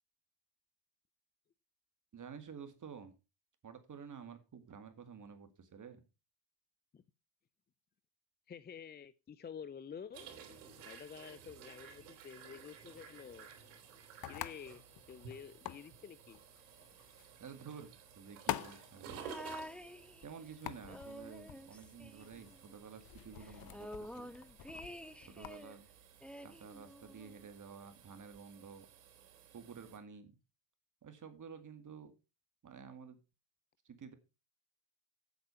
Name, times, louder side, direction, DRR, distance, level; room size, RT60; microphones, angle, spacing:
voice 1, 2.1-3.2 3.6-6.0 17.4-19.4 20.2-24.3 25.3-25.9 26.4-28.9 29.5-30.4 31.0-32.1 32.6-33.2 33.9-34.1, right 6 dB, 35° right, 9 dB, 2.1 m, -51 dB
voice 2, 8.5-10.3 10.8-13.5 14.3-14.8 15.1-16.4, left 7 dB, 20° left, 15 dB, 0.5 m, -50 dB
sound 1, 10.1-30.0, right 7 dB, 85° right, 3.4 m, -55 dB
sound 2, 13.1-25.6, left 11 dB, 45° left, 0.9 m, -48 dB
sound 3, 19.2-20.5 20.8-22.7 23.0-23.1 23.4-25.8 26.2-27.5 28.3-28.4, equal, ahead, 1.0 m, -49 dB
8.7 x 8.2 x 5.7 m, 0.30 s
supercardioid pair, 90°, 50 cm